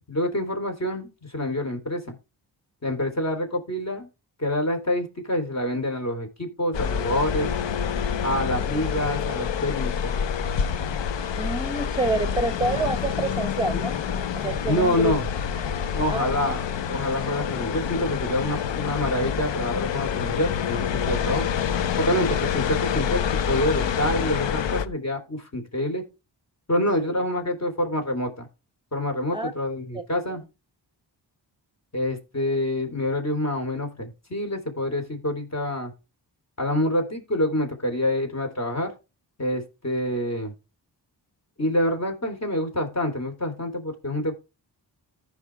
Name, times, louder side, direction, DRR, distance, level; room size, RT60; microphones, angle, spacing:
voice 1, 0.1-2.2 2.8-4.1 4.4-7.5 8.2-10.1 14.7-15.2 15.9-16.6 16.9-21.5 22.1-26.0 26.7-28.5 28.9-30.4 31.9-35.9 36.6-38.9 39.4-40.5 41.6-44.3, left 1 dB, 40° left, 5 dB, 3.5 m, -27 dB
sound 1, 6.7-24.9, left 8 dB, 85° left, 0.8 m, -27 dB
voice 2, 11.4-14.0 14.3-15.1 16.1-16.5 21.1-21.4 27.0-27.2 29.3-29.5 30.3-30.4, right 2 dB, 10° right, 9 dB, 0.8 m, -28 dB
15.0 x 5.3 x 3.5 m, 0.28 s
wide cardioid pair, 85°, 43 cm